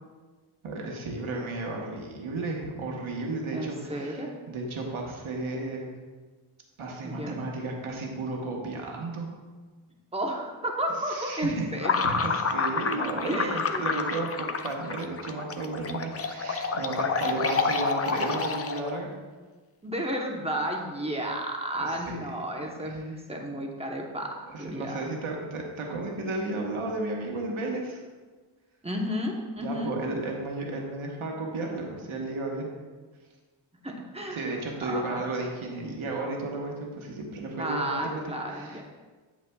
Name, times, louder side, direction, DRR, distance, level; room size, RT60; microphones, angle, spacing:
voice 1, 0.6-5.9 6.8-9.3 11.0-11.7 12.0-19.1 21.7-22.3 22.6-23.0 24.5-28.0 29.6-32.7 34.3-38.2 38.5-38.8, right 2 dB, 75° right, 0 dB, 1.3 m, -33 dB
voice 2, 3.5-4.3 7.0-7.4 10.1-11.9 13.2-13.9 19.8-25.0 28.8-29.9 33.8-35.2 37.6-38.8, equal, 10° right, 0 dB, 0.9 m, -32 dB
sound 1, 11.8-19.0, left 5 dB, 30° left, 0.4 m, -29 dB
8.4 x 8.3 x 2.3 m, 1.4 s
wide cardioid pair, 135°, 50 cm